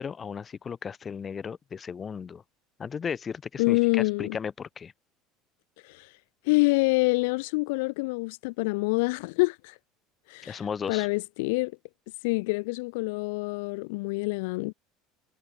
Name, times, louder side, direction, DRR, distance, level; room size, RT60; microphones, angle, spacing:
voice 1, 0.0-2.4 2.8-4.9 10.4-11.1, left 6 dB, 30° left, 0.8 m, -35 dB
voice 2, 3.6-4.4 5.8-6.1 6.5-9.8 10.3-10.6 10.9-11.7 12.2-14.7, left 26 dB, 75° left, 0.5 m, -26 dB
hypercardioid pair, 85°, 0 cm